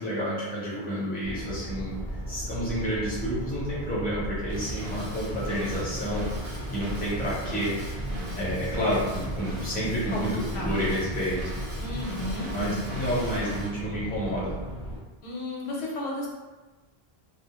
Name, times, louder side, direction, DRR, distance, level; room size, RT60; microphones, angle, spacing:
voice 1, 0.0-1.9 2.3-7.7 8.3-11.4 12.5-14.5, equal, 10° left, -8 dB, 0.6 m, -30 dB
sound 1, 1.2-15.0, equal, 25° right, 0.8 m, -36 dB
Drum kit / Drum, 4.5-13.7, right 1 dB, 50° right, 0.4 m, -38 dB
voice 2, 11.8-13.2 15.2-16.3, left 1 dB, 85° left, -4 dB, 0.9 m, -34 dB
2.3 x 2.0 x 2.8 m, 1.2 s
omnidirectional pair, 1.1 m